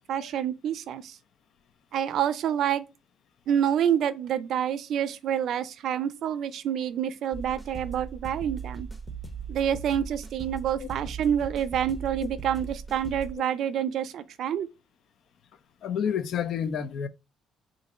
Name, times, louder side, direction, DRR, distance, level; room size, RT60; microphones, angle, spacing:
voice 1, 0.1-1.2 1.9-2.8 3.5-8.9 9.5-14.7, right 9 dB, 65° right, 0.4 m, -28 dB
sound 1, 7.3-13.3, right 6 dB, ahead, 0.8 m, -38 dB
voice 2, 15.8-17.1, left 8 dB, 60° left, 0.4 m, -29 dB
3.8 x 2.6 x 4.1 m
cardioid pair, 115°, 0 cm